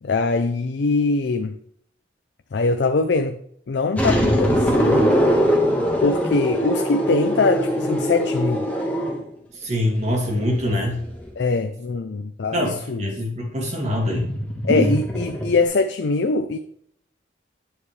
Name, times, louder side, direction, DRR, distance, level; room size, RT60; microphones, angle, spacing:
voice 1, 0.0-1.5 2.5-3.4 3.7-5.1 6.0-8.7 11.4-12.6 12.9-13.1 14.6-16.6, left 3 dB, 70° left, 0.4 m, -22 dB
sound 1, 4.0-9.3 10.1-11.3 14.1-15.6, equal, 10° left, 1.3 m, -22 dB
voice 2, 9.5-11.0 12.5-14.3 14.7-15.0, left 1 dB, 40° right, 2.2 m, -24 dB
9.0 x 7.0 x 3.2 m
head